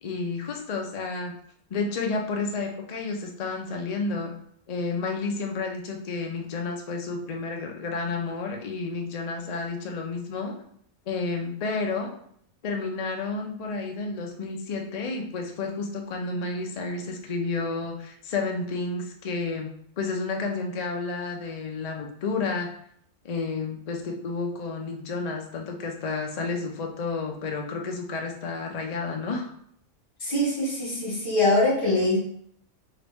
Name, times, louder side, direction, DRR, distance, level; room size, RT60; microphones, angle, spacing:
voice 1, 0.0-1.3 1.7-4.3 4.7-10.5 11.1-12.1 12.6-19.7 20.0-22.7 23.2-29.5, left 4 dB, 70° left, 2 dB, 0.3 m, -31 dB
voice 2, 30.2-32.2, left 2 dB, 40° left, -5 dB, 1.9 m, -23 dB
3.9 x 2.9 x 3.5 m, 0.67 s
omnidirectional pair, 1.5 m